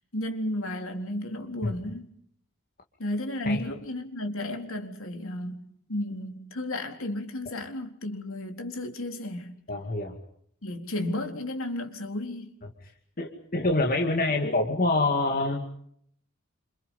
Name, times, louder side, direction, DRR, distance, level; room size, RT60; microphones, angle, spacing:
voice 1, 0.1-2.1 3.0-9.6 10.6-12.6, left 1 dB, 65° left, 3.9 m, -33 dB
voice 2, 9.7-10.1 13.2-15.6, left 2 dB, 40° left, 2.5 m, -26 dB
28.5 x 28.0 x 5.5 m
head